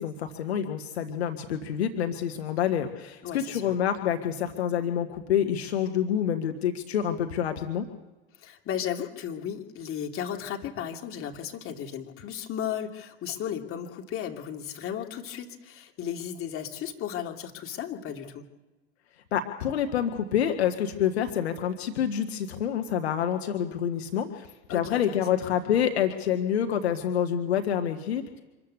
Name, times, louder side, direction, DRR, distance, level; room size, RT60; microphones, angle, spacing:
voice 1, 0.0-7.9 19.3-28.4, left 9 dB, 75° left, 6 dB, 1.7 m, -27 dB
voice 2, 3.2-3.7 8.4-18.5 24.7-25.2, left 9 dB, 40° left, 3 dB, 2.9 m, -35 dB
25.5 x 13.5 x 8.2 m, 1.2 s
hypercardioid pair, 80°, 32 cm